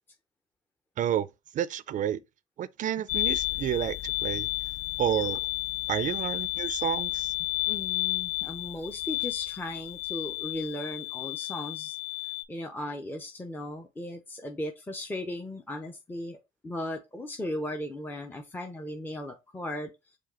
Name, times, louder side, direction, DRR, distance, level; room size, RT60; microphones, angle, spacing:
voice 1, 1.0-1.3 1.5-2.2 2.6-4.5 5.0-5.4 5.9-7.3, right 10 dB, 50° right, 0.4 m, -30 dB
sound 1, 3.1-12.4, left 25 dB, 75° left, 0.5 m, -32 dB
voice 2, 7.4-12.0 12.5-16.4 16.6-19.9, left 1 dB, 10° left, 0.6 m, -37 dB
4.8 x 2.3 x 4.2 m
cardioid pair, 110°, 17 cm